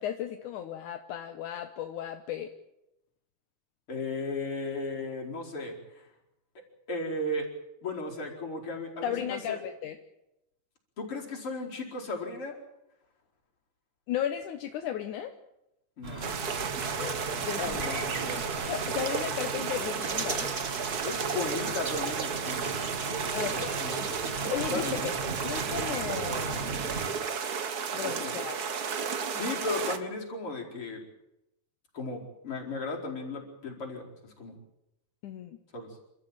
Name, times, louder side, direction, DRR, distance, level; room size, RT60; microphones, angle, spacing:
voice 1, 0.0-2.5 9.0-10.0 14.1-15.3 17.0-17.8 18.6-20.5 23.3-23.8 24.5-26.7 27.9-28.7 35.2-35.6, left 10 dB, 80° left, 6 dB, 2.6 m, -35 dB
voice 2, 3.9-6.0 6.9-7.5 7.8-9.6 11.0-12.6 16.0-16.5 17.5-18.5 21.0-25.0 28.0-28.3 29.3-31.0 31.9-34.5 35.7-36.0, left 2 dB, 45° left, -1 dB, 5.4 m, -36 dB
sound 1, 16.0-27.1, right 3 dB, 25° right, 1.5 m, -38 dB
sound 2, 16.2-30.0, right 6 dB, 50° right, 1.1 m, -33 dB
29.0 x 13.5 x 9.1 m, 0.87 s
omnidirectional pair, 3.6 m